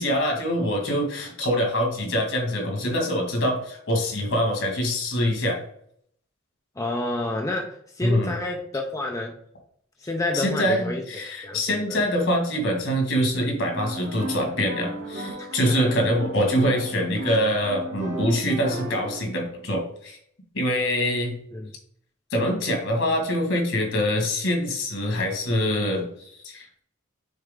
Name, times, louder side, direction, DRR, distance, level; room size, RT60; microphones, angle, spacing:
voice 1, 0.0-5.6 8.0-8.3 10.3-20.2 20.5-21.4 22.3-26.8, equal, 65° left, 2 dB, 2.0 m, -24 dB
voice 2, 6.8-9.4 10.0-11.0 11.4-12.0 15.4-16.0 21.5-21.7, left 2 dB, 15° left, 2 dB, 0.5 m, -29 dB
sound 1, 13.6-19.2, right 1 dB, 55° right, 1.3 m, -35 dB
6.5 x 4.4 x 3.7 m, 0.66 s
head